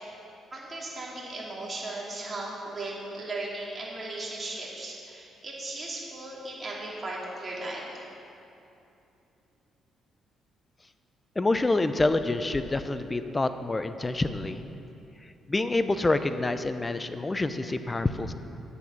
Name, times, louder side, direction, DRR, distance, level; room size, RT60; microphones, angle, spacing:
voice 1, 0.5-7.8, right 2 dB, 30° right, -4 dB, 2.7 m, -37 dB
voice 2, 11.4-14.6 15.5-18.3, left 2 dB, 20° left, 10 dB, 0.5 m, -27 dB
9.7 x 8.0 x 5.9 m, 2.8 s
cardioid pair, 90°, 0 cm